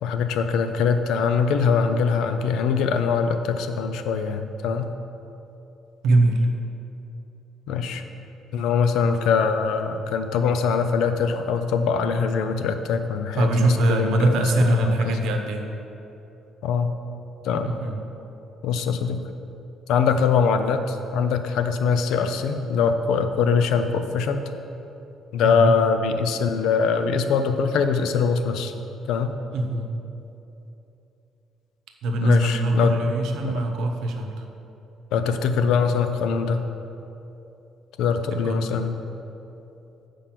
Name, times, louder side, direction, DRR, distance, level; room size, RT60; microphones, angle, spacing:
voice 1, 0.0-4.9 7.7-8.0 8.5-15.3 16.6-16.9 17.4-17.7 18.6-19.2 19.9-24.4 25.3-28.7 29.1-29.3 32.2-33.1 33.4-33.6 35.1-36.6 38.0-39.0, left 5 dB, 75° left, 8 dB, 0.5 m, -23 dB
voice 2, 6.0-6.5 13.3-15.7 17.6-18.0 25.4-25.8 29.5-29.9 32.0-34.4 38.3-38.7, right 1 dB, 70° right, 4 dB, 0.8 m, -22 dB
7.5 x 5.0 x 5.8 m, 2.9 s
cardioid pair, 165°, 0 cm